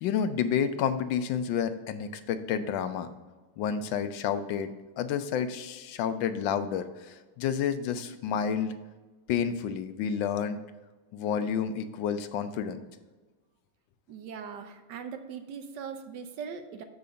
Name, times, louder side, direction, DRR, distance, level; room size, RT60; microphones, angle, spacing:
voice 1, 0.0-3.1 3.6-8.7 9.3-10.6 11.1-12.8, left 7 dB, 90° left, 10 dB, 1.4 m, -30 dB
voice 2, 14.1-16.8, right 6 dB, 75° right, 8 dB, 1.3 m, -40 dB
6.9 x 4.8 x 5.1 m, 1.3 s
omnidirectional pair, 2.0 m